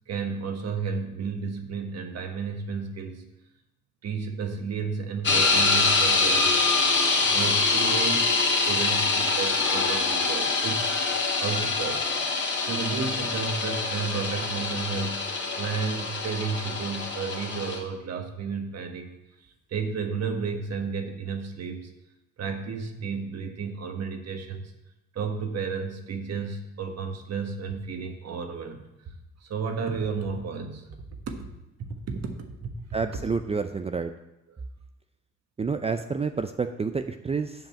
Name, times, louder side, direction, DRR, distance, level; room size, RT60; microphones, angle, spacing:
voice 1, 0.1-3.2 4.0-6.5 7.2-10.9 11.4-12.1 12.6-15.3 15.6-19.1 19.7-21.9 22.4-24.7 25.1-29.1 29.4-30.8 31.3-31.5 32.1-32.3 32.6-32.7 34.5-34.6, right 5 dB, 55° right, 5 dB, 1.4 m, -32 dB
sound 1, 5.2-17.8, left 3 dB, 40° left, 1.9 m, -25 dB
voice 2, 32.9-34.1 35.6-37.7, right 5 dB, 20° right, 8 dB, 0.4 m, -29 dB
7.6 x 5.3 x 7.3 m, 0.93 s
cardioid pair, 90°, 30 cm